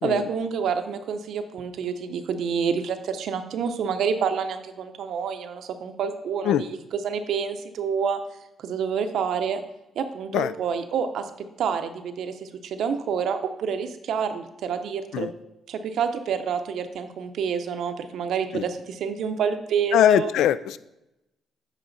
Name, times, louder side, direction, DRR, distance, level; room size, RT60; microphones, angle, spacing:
voice 1, 0.0-8.2 8.6-9.6 10.0-11.3 11.6-15.3 15.7-20.3, right 6 dB, 70° right, 7 dB, 0.6 m, -28 dB
voice 2, 19.9-20.8, left 11 dB, 80° left, 16 dB, 0.3 m, -21 dB
9.0 x 4.8 x 3.9 m, 0.90 s
cardioid pair, 90°, 0 cm